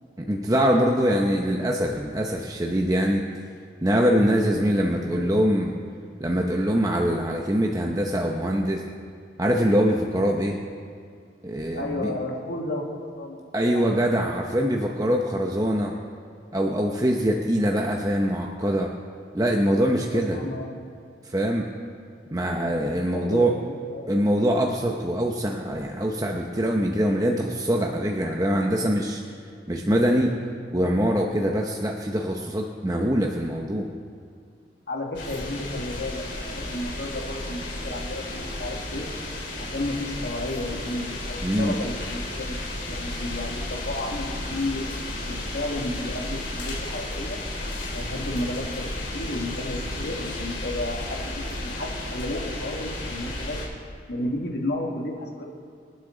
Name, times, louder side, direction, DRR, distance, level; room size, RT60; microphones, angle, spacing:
voice 1, 0.2-3.2 3.8-5.7 6.2-8.8 9.4-10.6 11.4-12.1 13.5-15.9 16.5-18.9 19.3-20.4 21.2-21.7 22.3-23.6 24.1-29.2 29.7-30.4 30.7-33.9 41.4-41.7, equal, 20° right, 0 dB, 0.8 m, -23 dB
voice 2, 4.6-5.4 11.7-13.8 20.1-20.8 23.1-24.1 34.9-39.0 39.6-42.6 42.9-44.9 45.3-47.4 47.9-53.6 54.1-55.5, left 1 dB, 70° left, 0 dB, 2.2 m, -32 dB
sound 1, 35.1-53.7, left 1 dB, 90° left, 3.4 m, -33 dB
26.5 x 9.8 x 3.9 m, 2.2 s
head